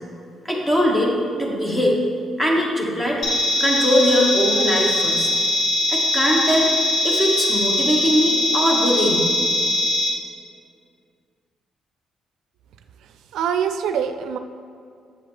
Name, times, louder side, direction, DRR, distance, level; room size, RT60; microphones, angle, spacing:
voice 1, 0.4-1.1 1.4-2.0 2.4-3.2 3.6-5.3 5.9-6.7 7.0-9.4, equal, 15° left, -1 dB, 1.5 m, -21 dB
sound 1, 3.2-10.1, left 1 dB, 65° left, 1.4 m, -21 dB
voice 2, 13.3-14.4, right 8 dB, 80° right, 8 dB, 0.4 m, -24 dB
7.9 x 7.4 x 3.2 m, 2.4 s
cardioid pair, 90°, 0 cm